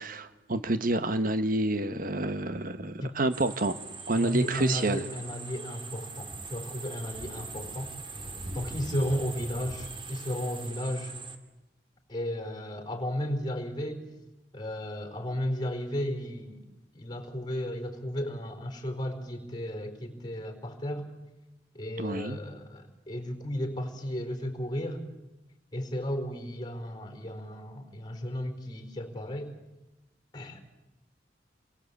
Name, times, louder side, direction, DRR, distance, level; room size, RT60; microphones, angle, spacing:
voice 1, 0.0-3.8 4.1-5.0 22.0-22.4, right 2 dB, 50° right, 11 dB, 1.3 m, -28 dB
sound 1, 3.3-11.4, right 3 dB, 30° right, 2.4 m, -41 dB
voice 2, 4.1-8.2 8.5-11.1 12.1-14.0 14.5-16.7 16.9-21.1 21.7-25.0 25.7-29.5 30.3-30.6, equal, 25° left, 6 dB, 4.4 m, -34 dB
29.5 x 22.5 x 8.4 m, 1.0 s
head